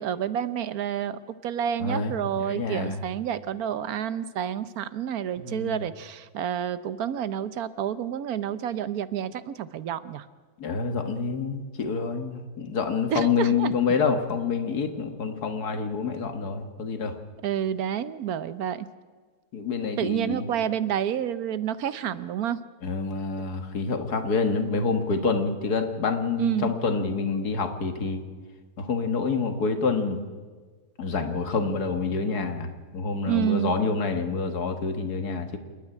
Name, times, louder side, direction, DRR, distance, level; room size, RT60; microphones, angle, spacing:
voice 1, 0.0-10.2 13.1-13.7 17.4-18.9 19.8-22.6 23.4-23.5 26.4-26.7 33.3-33.8, right 9 dB, 75° right, 15 dB, 1.3 m, -29 dB
voice 2, 1.8-3.0 5.4-5.8 10.6-17.1 19.5-20.5 22.8-28.2 28.8-30.2 31.0-35.6, left 4 dB, 85° left, 7 dB, 2.2 m, -27 dB
27.5 x 9.5 x 9.9 m, 1.4 s
omnidirectional pair, 1.6 m